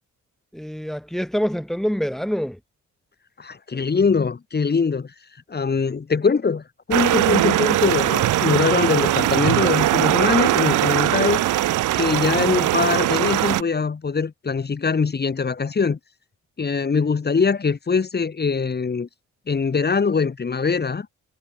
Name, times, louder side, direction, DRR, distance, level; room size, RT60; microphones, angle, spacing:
voice 1, 0.5-2.6 3.7-3.8, equal, ahead, 6.9 m, -26 dB
voice 2, 3.4-5.1 5.5-11.4 12.0-16.0 16.6-19.1 19.5-21.1, left 5 dB, 35° left, 3.6 m, -22 dB
sound 1, 6.9-13.6, right 14 dB, 80° right, 1.5 m, -20 dB
cardioid pair, 90°, 30 cm